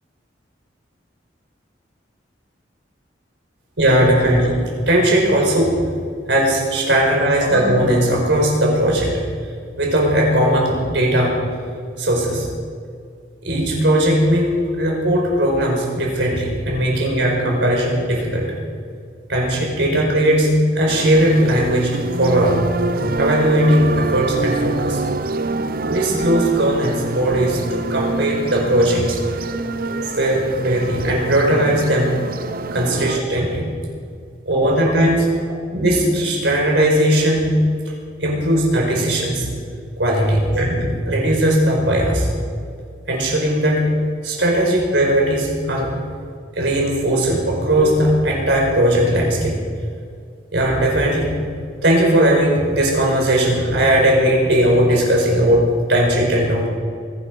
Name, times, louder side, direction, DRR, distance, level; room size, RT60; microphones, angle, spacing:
voice 1, 3.8-5.8 6.3-9.1 9.8-11.3 12.0-12.4 13.4-18.5 19.3-21.9 22.2-22.6 23.2-25.0 25.8-29.2 30.0-32.1 32.7-33.7 34.4-35.3 35.7-37.5 38.2-39.5 40.0-42.3 43.1-43.8 44.2-45.9 46.5-49.5 50.5-51.4 51.8-56.7, right 1 dB, 70° right, -1 dB, 5.1 m, -18 dB
sound 1, 20.9-33.2, right 3 dB, 50° right, 0.7 m, -25 dB
23.0 x 11.0 x 5.4 m, 2.2 s
head